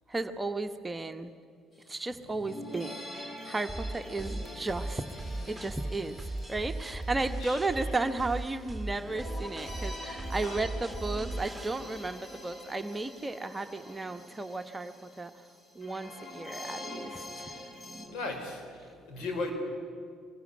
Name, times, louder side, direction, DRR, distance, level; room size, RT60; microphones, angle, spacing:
voice 1, 0.1-1.3 1.9-5.0 5.5-6.2 6.5-15.3 15.7-17.5, right 2 dB, 20° right, 7 dB, 1.3 m, -34 dB
sound 1, 1.8-1.9 2.1-18.1, left 1 dB, 30° left, 4.6 m, -45 dB
sound 2, 3.7-11.7, right 2 dB, ahead, 3.2 m, -38 dB
voice 2, 18.1-19.5, left 3 dB, 60° left, 4 dB, 5.0 m, -37 dB
25.0 x 21.5 x 9.8 m, 2.2 s
figure-of-eight pair, 50°, 0 cm